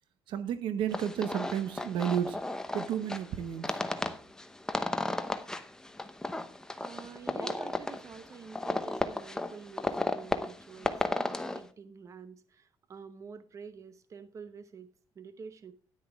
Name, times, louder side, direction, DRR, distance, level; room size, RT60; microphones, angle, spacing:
voice 1, 0.3-2.4 2.7-3.8, right 9 dB, 70° right, 0.9 m, -32 dB
sound 1, 0.9-11.6, left 2 dB, 5° left, 0.8 m, -34 dB
voice 2, 6.8-14.9 15.1-15.7, right 6 dB, 35° right, 1.0 m, -48 dB
10.0 x 9.8 x 3.5 m
cardioid pair, 120°, 9 cm